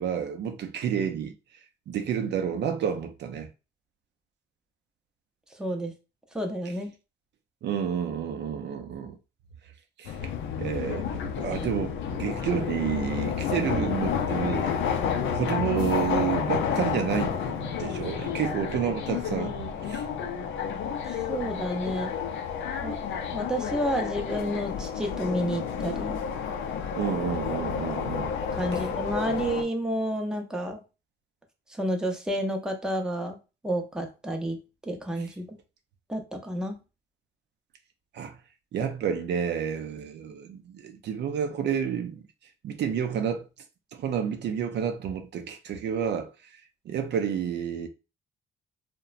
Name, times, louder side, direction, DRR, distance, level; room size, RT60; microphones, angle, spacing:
voice 1, 0.0-1.3 1.9-3.5 7.6-9.2 10.0-10.2 10.6-14.7 15.3-19.6 19.8-20.1 27.0-28.3 28.7-28.9 38.1-38.4 38.7-42.2 42.6-43.5 43.9-46.6 46.9-47.9, right 8 dB, 60° right, 0.4 m, -30 dB
voice 2, 5.6-5.9 6.3-6.9 21.1-22.1 22.8-26.2 28.5-30.8 31.7-33.4 33.6-35.6 36.1-36.8, equal, 5° right, 0.5 m, -30 dB
sound 1, 10.1-29.6, left 7 dB, 80° left, 0.5 m, -30 dB
2.8 x 2.1 x 2.4 m
cardioid pair, 90°, 20 cm